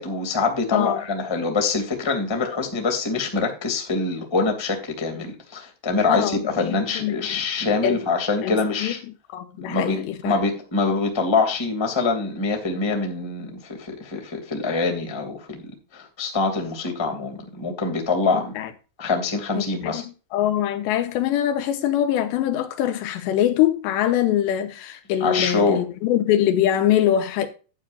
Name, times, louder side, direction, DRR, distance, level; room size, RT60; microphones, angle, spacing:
voice 1, 0.0-9.0 9.6-18.5 19.0-20.0 25.2-25.8, left 4 dB, 10° left, 1.6 m, -24 dB
voice 2, 6.1-7.2 7.8-8.0 8.4-8.9 9.3-10.4 18.3-18.7 19.6-20.0 20.3-27.5, left 11 dB, 80° left, 3.1 m, -23 dB
12.0 x 9.6 x 2.6 m
omnidirectional pair, 5.2 m